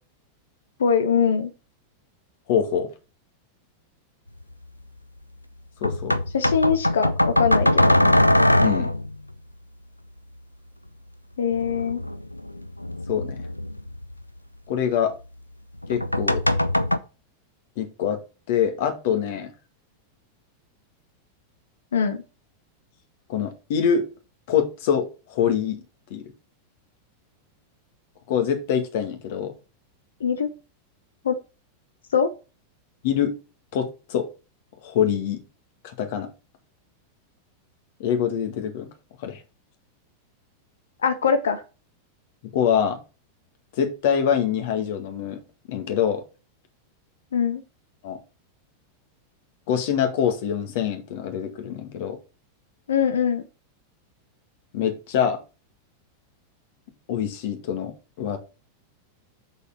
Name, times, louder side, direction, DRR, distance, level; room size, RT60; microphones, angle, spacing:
voice 1, 0.8-1.5 6.3-7.9 11.4-12.0 21.9-22.2 30.2-30.5 31.2-31.4 32.1-32.3 41.0-41.6 47.3-47.6 52.9-53.4, left 6 dB, 65° left, 10 dB, 0.9 m, -22 dB
voice 2, 2.5-2.9 5.8-6.1 8.6-8.9 13.1-13.4 14.7-15.1 15.9-16.4 17.8-18.2 18.5-19.5 23.3-24.1 24.5-25.8 26.1-26.2 28.3-29.5 33.0-33.3 33.7-34.3 34.8-35.4 35.8-36.3 38.0-38.9 39.2-39.4 42.5-43.0 43.8-45.4 45.7-46.2 48.0-48.2 49.7-52.2 54.7-55.4 57.1-58.4, left 8 dB, 50° left, 6 dB, 2.1 m, -24 dB
sound 1, 4.4-4.5 5.8-9.1 11.5-14.2 15.8-17.0, left 1 dB, 85° left, 0.5 m, -21 dB
8.0 x 6.8 x 4.2 m, 0.32 s
figure-of-eight pair, 90°, 0 cm